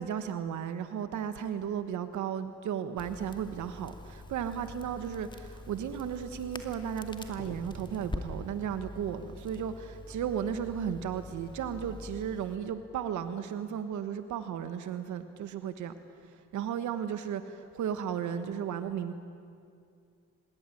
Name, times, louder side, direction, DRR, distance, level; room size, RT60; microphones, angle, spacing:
voice 1, 0.0-15.9 16.3-19.1, right 8 dB, 75° right, 10 dB, 1.4 m, -35 dB
Crackle, 3.0-12.6, left 2 dB, 15° left, 2.5 m, -45 dB
27.0 x 20.0 x 9.9 m, 2.4 s
cardioid pair, 90°, 30 cm